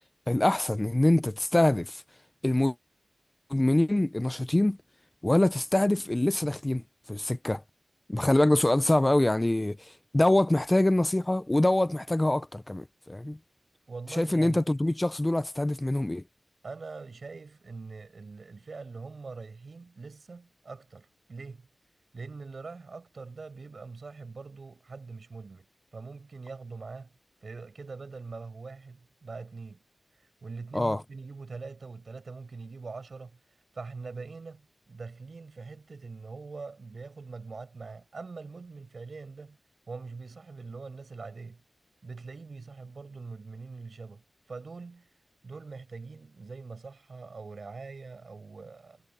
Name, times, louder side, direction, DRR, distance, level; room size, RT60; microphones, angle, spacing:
voice 1, 0.3-2.0 2.4-2.8 3.5-4.8 5.2-6.8 7.1-7.6 8.1-13.4 14.1-16.2 30.7-31.0, left 1 dB, 20° left, 0.5 m, -25 dB
voice 2, 13.9-14.6 16.6-21.7 22.1-25.7 25.9-27.1 27.4-29.8 30.2-39.6 39.9-41.6 42.0-44.2 44.5-45.1 45.4-49.0, right 4 dB, 65° right, 6.1 m, -43 dB
wide cardioid pair, 95°, 0 cm